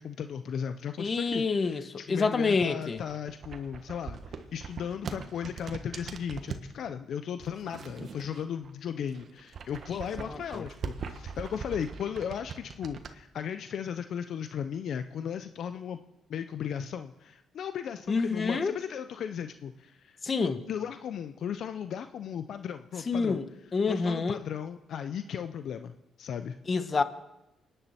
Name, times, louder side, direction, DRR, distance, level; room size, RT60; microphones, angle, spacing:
voice 1, 0.0-16.0 16.3-23.4 23.9-26.6, left 8 dB, 65° left, 0.6 m, -36 dB
voice 2, 1.0-3.0 10.3-10.6 18.1-18.8 20.2-20.6 23.1-23.5 23.7-24.4 26.7-27.0, left 4 dB, 35° left, 1.2 m, -27 dB
sound 1, 2.8-6.7 7.4-8.7 9.0-13.1, right 6 dB, 55° right, 1.3 m, -41 dB
24.5 x 10.0 x 4.4 m
cardioid pair, 90°, 0 cm